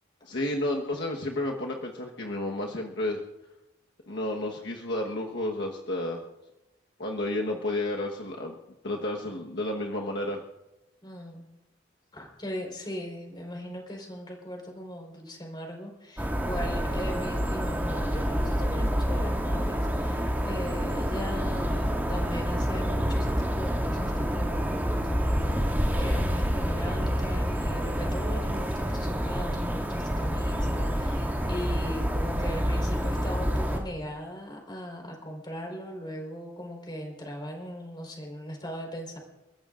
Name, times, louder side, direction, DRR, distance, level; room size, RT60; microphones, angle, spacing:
voice 1, 0.2-3.2 4.1-6.2 7.0-8.5 8.8-10.4, left 1 dB, 60° left, -1 dB, 1.3 m, -31 dB
voice 2, 11.0-11.5 12.1-24.9 25.5-25.6 25.9-39.2, equal, 25° left, 0 dB, 4.3 m, -38 dB
sound 1, 16.2-33.8, equal, 10° right, 2.4 m, -28 dB
30.0 x 14.5 x 2.6 m, 0.96 s
head